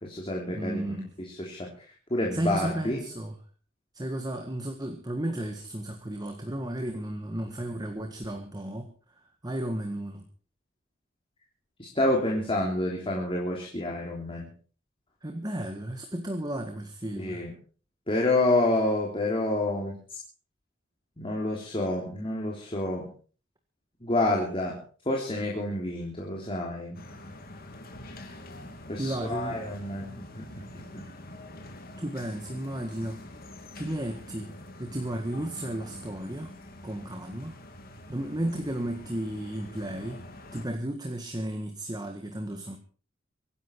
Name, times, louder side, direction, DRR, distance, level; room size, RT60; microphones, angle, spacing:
voice 1, 0.0-1.7 2.1-3.0 11.8-14.5 17.2-17.5 18.1-19.9 21.2-23.1 24.0-24.8 25.1-27.0 28.9-31.0, left 1 dB, 25° left, -1 dB, 3.4 m, -28 dB
voice 2, 0.5-1.1 2.3-3.4 3.9-10.2 15.2-17.4 29.0-29.6 32.0-33.2 33.8-34.5 34.8-36.5 36.8-37.6 38.1-40.2 40.5-42.8, right 1 dB, 20° right, 5 dB, 1.7 m, -33 dB
sound 1, 26.9-40.7, left 1 dB, 50° left, 3.2 m, -46 dB
24.5 x 11.0 x 4.7 m, 0.41 s
head